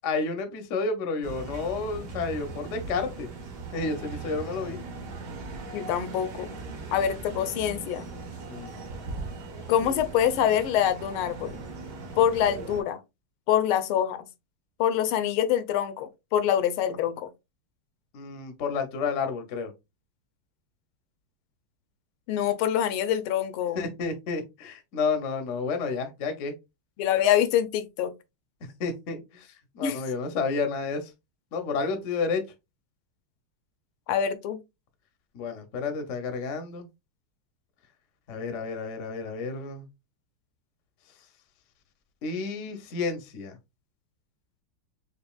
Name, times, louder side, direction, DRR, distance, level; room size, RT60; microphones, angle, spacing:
voice 1, 0.0-3.3 3.7-4.8 8.5-8.8 18.1-19.7 23.7-26.5 28.8-29.5 29.7-31.1 31.5-32.4 35.3-36.9 38.3-39.9 42.2-43.6, left 4 dB, 65° left, 0.7 m, -30 dB
sound 1, 1.2-12.8, right 3 dB, 55° right, 1.5 m, -39 dB
voice 2, 5.7-6.5 6.9-8.0 9.7-11.6 12.2-13.0 13.5-14.2 14.8-17.3 22.3-23.8 27.0-28.1 29.8-30.0 34.1-34.6, left 10 dB, 85° left, 1.5 m, -25 dB
5.1 x 2.6 x 2.3 m
omnidirectional pair, 2.3 m